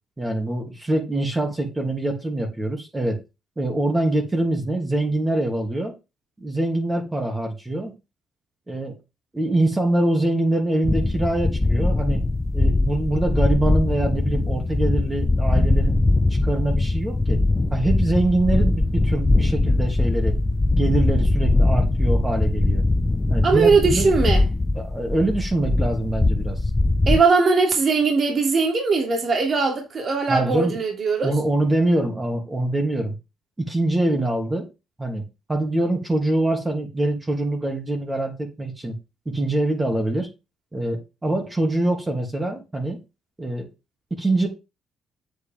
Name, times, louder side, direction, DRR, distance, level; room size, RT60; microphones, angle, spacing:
voice 1, 0.2-3.2 3.6-5.9 6.4-7.9 8.7-8.9 9.3-12.2 12.5-16.0 16.4-17.4 17.7-20.3 20.8-22.9 23.3-24.2 24.8-26.6 30.3-30.8 31.2-33.1 33.6-34.7 35.0-38.9 39.2-40.3 40.7-43.0 43.4-43.7 44.1-44.5, right 2 dB, 15° right, 3.0 m, -24 dB
sound 1, 10.8-27.2, left 2 dB, 20° left, 0.7 m, -21 dB
voice 2, 23.4-24.4 27.1-31.3, right 4 dB, 45° right, 3.0 m, -20 dB
8.4 x 8.0 x 3.6 m
cardioid pair, 90°, 0 cm